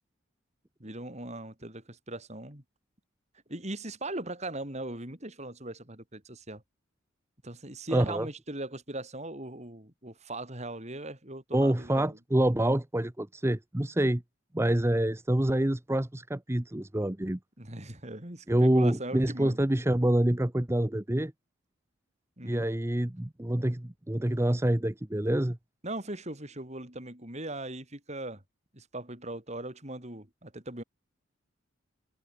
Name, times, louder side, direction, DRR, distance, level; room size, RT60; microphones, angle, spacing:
voice 1, 0.8-2.6 3.5-6.6 7.4-12.2 17.6-19.6 22.4-22.7 25.8-28.4 28.7-30.8, right 1 dB, 35° right, 4.6 m, -39 dB
voice 2, 7.9-8.3 11.5-14.2 14.5-17.4 18.5-21.3 22.4-25.6, right 1 dB, 10° right, 0.7 m, -26 dB
head